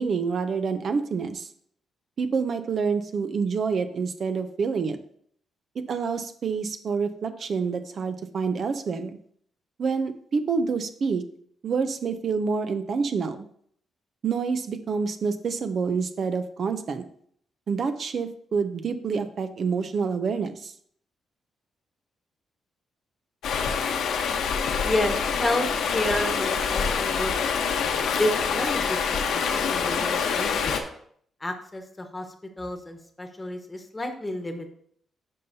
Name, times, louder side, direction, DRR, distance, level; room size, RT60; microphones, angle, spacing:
voice 1, 0.0-1.5 2.2-5.0 5.9-9.2 9.8-11.2 11.6-13.5 14.2-17.1 17.7-20.7, right 5 dB, 55° right, 10 dB, 0.5 m, -27 dB
Stream, 23.4-30.8, left 6 dB, 85° left, 1.0 m, -26 dB
voice 2, 24.8-27.3 28.2-30.8 31.4-32.2 32.6-34.7, left 1 dB, 15° left, 5 dB, 1.2 m, -30 dB
10.5 x 5.5 x 2.7 m, 0.63 s
cardioid pair, 100°, 0 cm